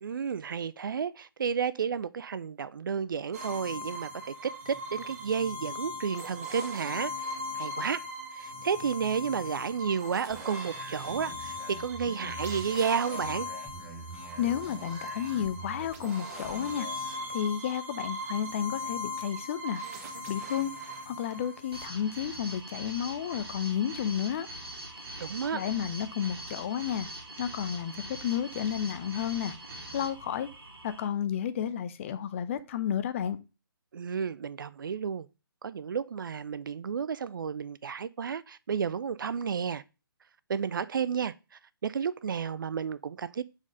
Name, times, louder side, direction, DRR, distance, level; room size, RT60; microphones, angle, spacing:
voice 1, 0.0-7.1 7.6-8.0 8.3-13.5 25.2-25.6 33.9-35.3 35.6-39.8 40.5-41.3 41.8-43.4, right 6 dB, 60° right, 0.4 m, -32 dB
sound 1, 3.3-21.9, left 2 dB, 40° right, 1.4 m, -39 dB
sound 2, 10.3-17.1, right 4 dB, 10° right, 1.8 m, -46 dB
voice 2, 14.4-16.9 17.3-19.8 20.3-20.7 21.0-24.5 25.2-25.3 25.5-27.1 27.4-27.9 28.2-29.5 29.9-30.5 30.8-33.4, left 9 dB, 35° left, 0.6 m, -31 dB
sound 3, 21.7-31.1, right 1 dB, 85° right, 1.9 m, -43 dB
4.7 x 4.3 x 5.2 m
figure-of-eight pair, 140°, 12 cm